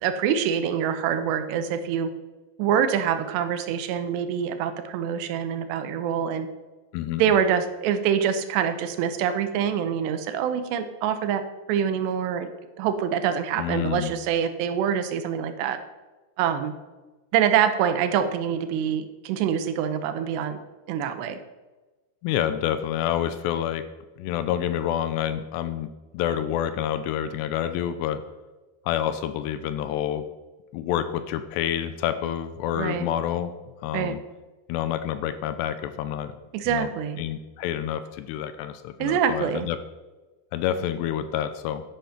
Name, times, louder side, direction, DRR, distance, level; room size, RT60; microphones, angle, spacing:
voice 1, 0.0-2.1 2.6-6.5 7.2-11.4 11.7-12.5 12.8-15.8 16.4-16.7 17.3-20.6 20.9-21.4 32.7-33.1 33.9-34.1 36.5-37.2 39.0-39.7, right 8 dB, 80° right, 9 dB, 2.9 m, -25 dB
voice 2, 13.6-14.1 22.2-23.8 24.2-28.2 28.9-30.2 30.7-33.5 33.8-34.2 34.7-36.3 36.7-36.9 37.2-39.8 40.5-41.8, left 10 dB, 80° left, 11 dB, 2.7 m, -28 dB
11.0 x 10.0 x 5.8 m, 1.2 s
omnidirectional pair, 5.1 m